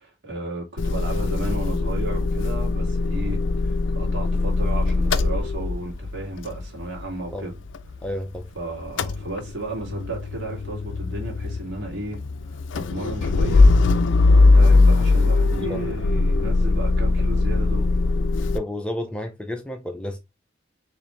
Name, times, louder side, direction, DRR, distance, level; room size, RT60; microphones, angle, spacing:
voice 1, 0.2-7.6 8.6-13.7 14.3-17.9, right 2 dB, 65° right, 1.9 m, -34 dB
Motor vehicle (road) / Engine starting / Idling, 0.8-8.5 8.8-18.6, left 3 dB, 75° left, 0.4 m, -21 dB
voice 2, 8.0-8.5 15.7-15.8 18.5-20.2, left 1 dB, 5° left, 0.5 m, -31 dB
4.3 x 3.1 x 3.1 m
head